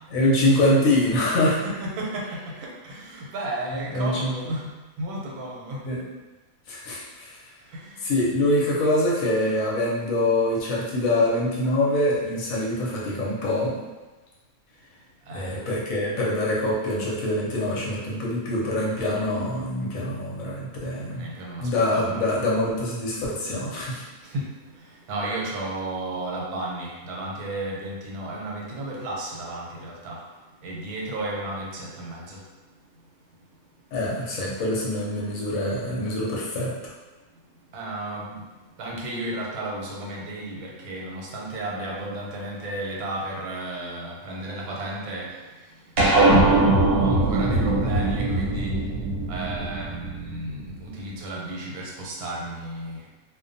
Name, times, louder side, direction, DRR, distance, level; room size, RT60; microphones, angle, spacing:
voice 1, 0.1-1.6 3.9-4.3 5.8-6.0 6.7-7.4 8.0-13.7 15.3-21.2 21.6-24.0 33.9-36.7, left 1 dB, 70° left, -5 dB, 1.0 m, -24 dB
voice 2, 1.4-5.8 7.7-8.2 15.2-15.7 21.2-22.2 24.2-30.2 30.6-32.5 37.7-38.5 38.8-45.8 46.1-48.8 49.3-53.1, right 1 dB, 85° right, -3 dB, 1.1 m, -33 dB
sound 1, 46.0-50.7, right 2 dB, 55° right, 0.7 m, -21 dB
2.4 x 2.1 x 2.5 m, 1.2 s
omnidirectional pair, 1.6 m